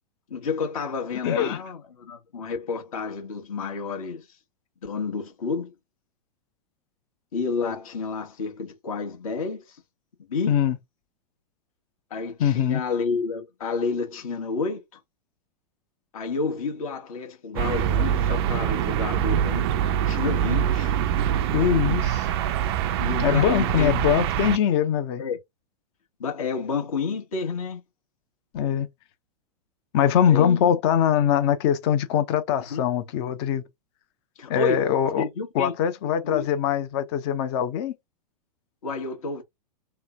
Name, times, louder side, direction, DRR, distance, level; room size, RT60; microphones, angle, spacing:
voice 1, 0.3-4.3 4.8-5.7 7.3-9.8 10.3-10.5 12.1-14.8 16.1-19.7 20.1-20.9 23.0-24.0 25.2-25.4 26.2-27.8 30.3-30.7 32.6-32.8 34.4-34.9 35.2-35.7 36.2-36.5 38.8-39.4, left 4 dB, 55° left, 1.2 m, -30 dB
voice 2, 1.2-1.6 10.5-10.8 12.4-12.8 21.5-22.3 23.2-25.2 28.5-28.9 29.9-33.6 34.5-35.3 35.5-37.9, left 9 dB, 40° left, 0.7 m, -22 dB
sound 1, 17.6-24.6, right 10 dB, 40° right, 0.4 m, -24 dB
3.2 x 2.1 x 3.4 m
figure-of-eight pair, 100°, 21 cm